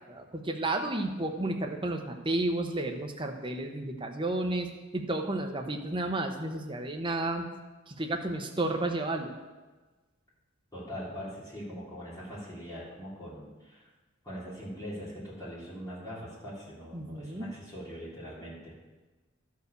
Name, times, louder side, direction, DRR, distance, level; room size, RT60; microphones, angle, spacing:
voice 1, 0.1-7.4 7.9-9.3 16.9-17.5, right 2 dB, 25° right, 3 dB, 0.9 m, -32 dB
voice 2, 10.7-13.8 14.2-18.7, equal, 20° left, -8 dB, 4.0 m, -42 dB
12.0 x 4.8 x 6.8 m, 1.2 s
head